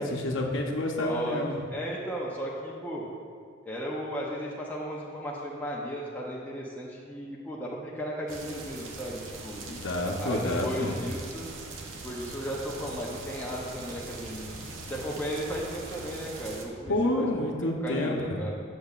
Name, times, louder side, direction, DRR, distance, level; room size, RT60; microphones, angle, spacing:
voice 1, 0.0-1.6 9.7-11.0 16.9-18.4, left 1 dB, 75° left, 1 dB, 0.7 m, -29 dB
voice 2, 1.0-1.4 1.7-3.1 3.6-9.6 10.2-11.5 12.0-14.5 14.9-17.3 17.8-18.5, equal, 10° left, -5 dB, 0.6 m, -35 dB
sound 1, 8.3-16.7, right 3 dB, 80° right, 0.7 m, -42 dB
8.5 x 6.5 x 2.4 m, 2.3 s
head